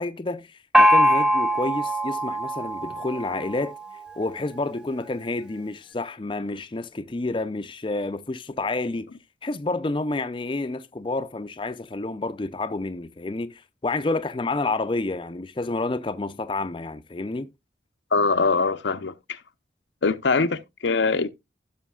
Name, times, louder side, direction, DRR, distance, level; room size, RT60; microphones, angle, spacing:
voice 1, 0.0-3.7 4.2-9.1 9.4-17.5, left 2 dB, 25° left, 0.5 m, -29 dB
Gong, 0.7-4.3, equal, 5° right, 0.8 m, -22 dB
voice 2, 18.1-19.4 20.0-21.3, left 4 dB, 80° left, 0.7 m, -23 dB
15.5 x 6.3 x 2.3 m
head